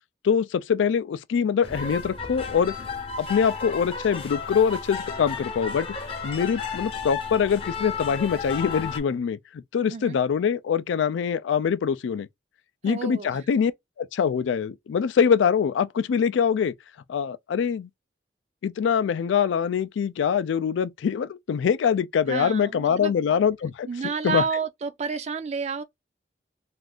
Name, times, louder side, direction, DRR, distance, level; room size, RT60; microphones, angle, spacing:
voice 1, 0.2-2.7 3.2-5.9 6.2-12.3 12.8-13.7 14.0-16.7 17.1-17.9 18.6-23.9 24.2-24.4, left 7 dB, 85° left, 0.3 m, -24 dB
sound 1, 1.6-9.0, left 5 dB, 30° left, 0.6 m, -33 dB
voice 2, 12.8-13.4 22.3-23.3 23.9-25.8, right 5 dB, 35° right, 0.4 m, -30 dB
2.5 x 2.4 x 3.4 m
head